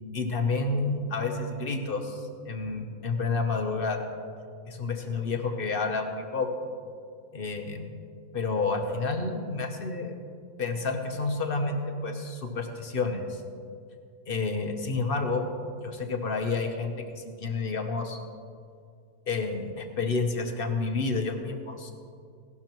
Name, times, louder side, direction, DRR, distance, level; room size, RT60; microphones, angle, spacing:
voice 1, 0.1-4.1 4.7-6.7 7.3-7.9 8.3-10.1 10.6-13.4 14.3-15.5 15.8-18.2 19.3-21.9, left 3 dB, 40° left, 4 dB, 1.0 m, -30 dB
16.5 x 12.0 x 3.0 m, 2.3 s
omnidirectional pair, 1.7 m